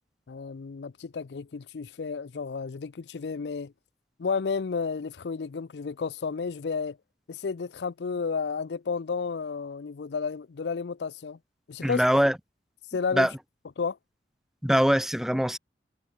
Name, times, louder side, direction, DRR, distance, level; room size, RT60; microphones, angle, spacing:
voice 1, 0.3-3.7 4.2-7.0 7.3-11.4 11.7-12.0 12.9-13.3 13.8-14.0, left 5 dB, 70° left, 0.5 m, -32 dB
voice 2, 11.8-12.4 13.1-13.3 14.6-15.6, equal, ahead, 0.8 m, -22 dB
head